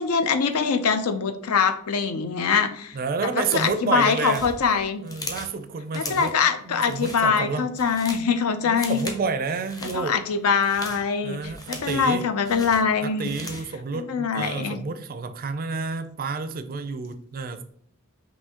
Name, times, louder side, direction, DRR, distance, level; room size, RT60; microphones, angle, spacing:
voice 1, 0.0-2.9 3.5-5.0 6.0-9.0 9.9-11.4 11.7-13.3 13.9-14.8, left 6 dB, 80° left, 10 dB, 0.5 m, -23 dB
voice 2, 2.9-4.4 5.0-6.4 6.6-7.7 8.6-10.2 11.2-12.3 13.0-17.6, right 4 dB, 40° right, 10 dB, 0.4 m, -29 dB
sound 1, 3.3-3.8 4.1-5.6 5.9-6.4 6.8-7.2 7.6-8.3 8.7-9.2 9.5-10.0 10.5-12.1 12.4-13.7, left 2 dB, 15° left, 0.6 m, -38 dB
5.5 x 2.7 x 2.9 m, 0.65 s
head